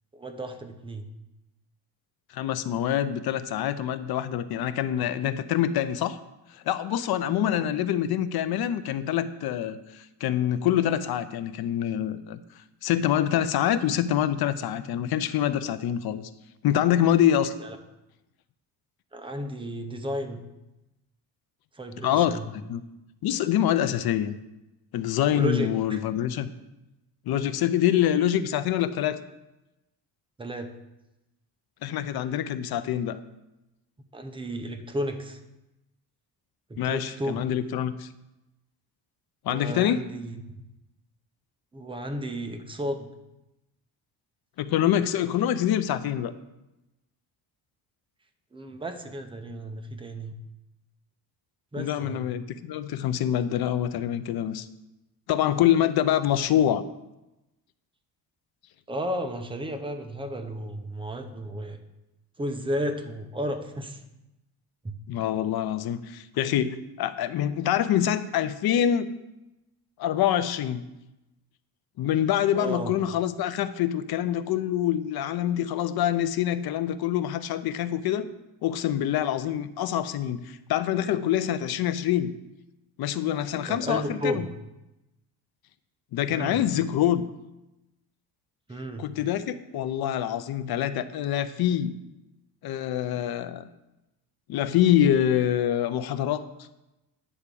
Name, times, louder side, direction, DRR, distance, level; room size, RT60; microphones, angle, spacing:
voice 1, 0.1-1.0 7.4-7.7 17.6-17.8 19.1-20.4 21.7-22.5 25.4-26.0 30.4-30.7 34.1-35.4 36.7-37.4 39.5-40.4 41.7-43.1 48.5-50.3 51.7-52.2 58.9-61.8 62.4-64.0 64.8-65.0 72.5-73.0 83.5-84.5 86.3-86.6 88.7-89.1, equal, 10° right, 6 dB, 0.6 m, -33 dB
voice 2, 2.3-6.2 6.5-12.4 12.8-16.3 16.6-17.5 22.0-22.8 23.2-24.4 24.9-26.5 27.3-29.2 31.8-33.2 36.8-38.1 39.4-40.1 44.6-46.3 51.8-54.7 55.3-56.8 65.1-69.1 70.0-70.8 72.0-78.3 78.6-82.3 83.0-84.4 86.1-87.3 89.0-92.0 92.6-93.7 94.5-96.4, left 10 dB, 60° left, 12 dB, 0.6 m, -25 dB
9.8 x 3.6 x 6.8 m, 0.96 s
cardioid pair, 145°, 43 cm